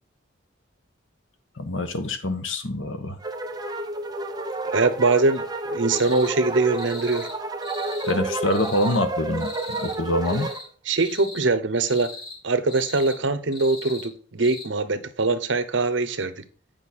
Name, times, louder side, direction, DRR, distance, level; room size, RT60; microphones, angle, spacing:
voice 1, 1.6-3.2 8.0-10.5, left 1 dB, 85° left, 1.2 m, -25 dB
sound 1, 3.2-10.6, right 2 dB, 20° right, 0.8 m, -30 dB
voice 2, 4.6-7.3 10.9-12.1 12.4-16.4, right 3 dB, 70° right, 0.9 m, -23 dB
sound 2, 6.0-6.3 6.7-7.3 7.6-8.2 8.5-9.0 9.4-10.0 10.2-10.7 10.9-11.5 11.8-12.4 12.7-13.2 13.5-14.1 14.4-14.6, left 2 dB, 50° left, 3.5 m, -40 dB
9.0 x 5.3 x 4.3 m
head